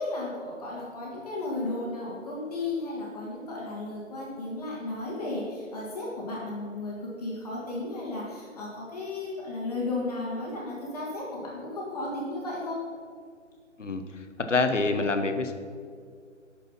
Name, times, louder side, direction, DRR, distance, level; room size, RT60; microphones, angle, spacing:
voice 1, 0.0-12.8, left 2 dB, 30° left, -4 dB, 1.7 m, -34 dB
voice 2, 14.5-15.5, left 3 dB, 75° left, 7 dB, 1.1 m, -25 dB
8.6 x 6.6 x 5.6 m, 2.1 s
figure-of-eight pair, 150°, 37 cm